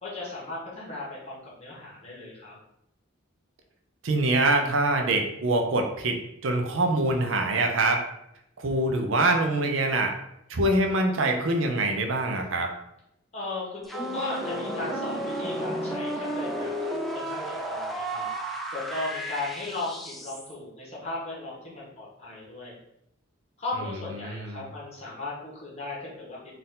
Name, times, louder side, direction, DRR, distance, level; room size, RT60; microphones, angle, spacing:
voice 1, 0.0-2.5 13.3-18.3 18.7-22.8 23.6-26.4, left 2 dB, 30° left, -5 dB, 1.5 m, -36 dB
voice 2, 4.0-8.0 8.6-10.1 10.5-12.7 24.2-24.6, right 2 dB, 65° right, 4 dB, 0.6 m, -24 dB
sound 1, 13.8-20.5, right 1 dB, ahead, 0.4 m, -33 dB
4.2 x 2.6 x 3.7 m, 0.79 s
head